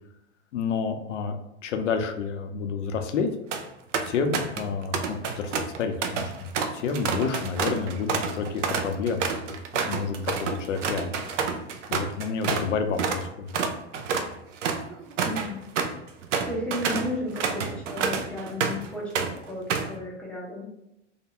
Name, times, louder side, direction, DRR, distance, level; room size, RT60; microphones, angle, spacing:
voice 1, 0.5-1.4 1.6-3.3 4.0-9.6 9.9-10.3 10.6-11.1 11.9-13.5, left 5 dB, 90° left, 6 dB, 0.5 m, -29 dB
sound 1, 3.3-3.6 3.9-4.7 4.9-12.7 13.0-13.2 13.5-18.9 19.2-20.0, right 5 dB, 90° right, 0.5 m, -29 dB
voice 2, 15.2-15.6 16.5-19.1 19.4-20.7, left 1 dB, 5° left, -5 dB, 0.4 m, -33 dB
2.5 x 2.2 x 2.8 m, 0.86 s
hypercardioid pair, 115°, 36 cm